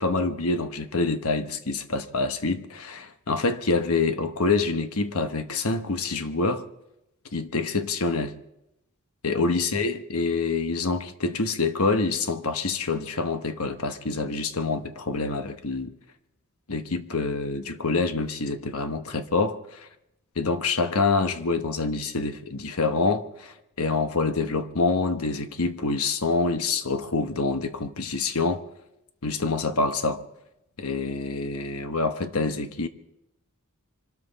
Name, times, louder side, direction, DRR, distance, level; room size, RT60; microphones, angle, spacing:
voice 1, 0.0-6.7 7.3-8.4 9.2-15.9 16.7-19.9 20.4-28.6 29.2-30.2 30.8-32.9, left 3 dB, 80° left, 1.1 m, -26 dB
25.5 x 13.5 x 4.1 m
head